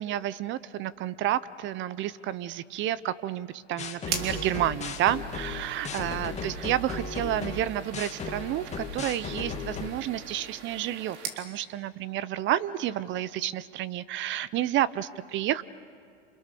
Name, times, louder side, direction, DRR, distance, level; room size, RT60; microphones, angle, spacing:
voice 1, 0.0-15.6, right 12 dB, 30° right, 18 dB, 0.7 m, -30 dB
sound 1, 3.8-9.9, left 4 dB, 20° left, 2.2 m, -36 dB
sound 2, 4.0-11.4, right 6 dB, 70° right, 3.9 m, -41 dB
29.0 x 28.5 x 6.9 m, 2.2 s
hypercardioid pair, 115°, 36 cm